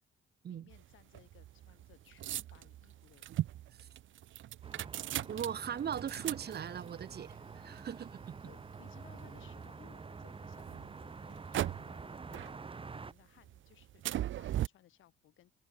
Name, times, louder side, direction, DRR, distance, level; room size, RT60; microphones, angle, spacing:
voice 1, 0.5-3.4 8.4-15.5, left 13 dB, 80° left, 5.7 m, -63 dB
sound 1, 0.7-9.9 10.4-12.1 12.3-13.1 13.4-14.7, right 13 dB, 75° right, 1.5 m, -40 dB
sound 2, 4.6-13.1, right 4 dB, 25° right, 1.5 m, -48 dB
voice 2, 5.3-8.3, right 8 dB, 55° right, 2.0 m, -39 dB
cardioid pair, 90°, 20 cm